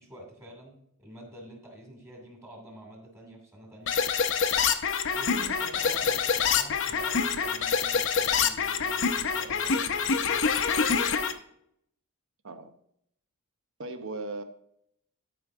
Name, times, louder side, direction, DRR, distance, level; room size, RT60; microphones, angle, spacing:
voice 1, 0.0-4.0 5.1-10.4, right 1 dB, 15° right, 0 dB, 2.6 m, -48 dB
sound 1, 3.9-11.3, left 6 dB, 65° left, 0.7 m, -26 dB
voice 2, 13.8-14.4, right 2 dB, 65° right, 8 dB, 0.9 m, -37 dB
12.0 x 5.1 x 3.6 m, 0.72 s
head